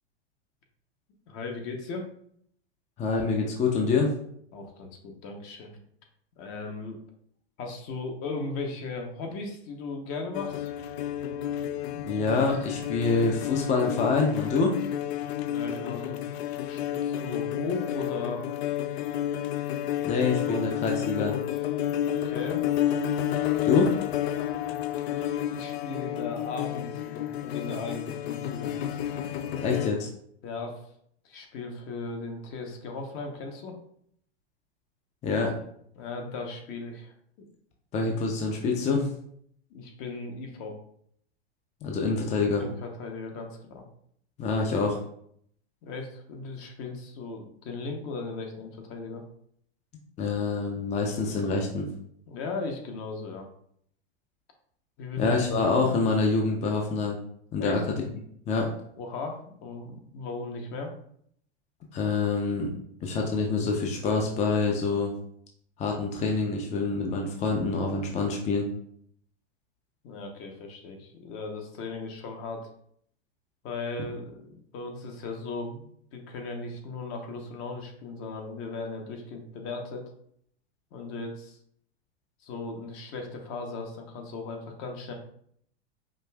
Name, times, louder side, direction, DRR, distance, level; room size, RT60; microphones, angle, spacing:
voice 1, 1.3-2.1 4.5-5.8 6.4-7.0 7.6-10.7 15.5-16.2 16.6-18.4 20.5-20.7 22.2-22.6 25.5-28.7 30.4-30.9 31.2-33.8 35.9-37.5 39.7-40.8 42.6-43.9 45.8-49.2 52.3-53.5 55.0-55.3 57.6-57.9 59.0-60.9 70.0-72.7 73.6-80.0 80.9-81.6 82.4-85.1, left 3 dB, 40° left, 3 dB, 0.9 m, -37 dB
voice 2, 3.0-4.1 11.9-14.8 20.0-21.4 23.6-23.9 29.6-30.1 35.2-35.5 37.9-39.1 41.8-42.6 44.4-45.0 50.2-51.9 55.2-57.2 57.5-57.8 58.5-58.7 61.9-62.7 63.0-65.1 65.8-68.7, left 4 dB, 20° left, 1 dB, 0.5 m, -26 dB
sound 1, 10.3-29.9, left 11 dB, 70° left, 0.5 m, -31 dB
5.1 x 2.5 x 2.3 m, 0.66 s
hypercardioid pair, 105°, 33 cm